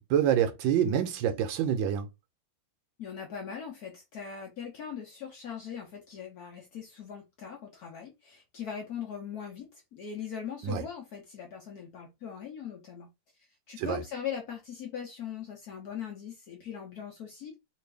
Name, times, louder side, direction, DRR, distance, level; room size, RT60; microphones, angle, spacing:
voice 1, 0.0-2.1 10.6-10.8 13.8-14.0, right 9 dB, 75° right, 1.2 m, -27 dB
voice 2, 3.0-13.1 13.7-17.5, left 8 dB, 65° left, 1.0 m, -40 dB
3.3 x 2.5 x 3.4 m
omnidirectional pair, 2.3 m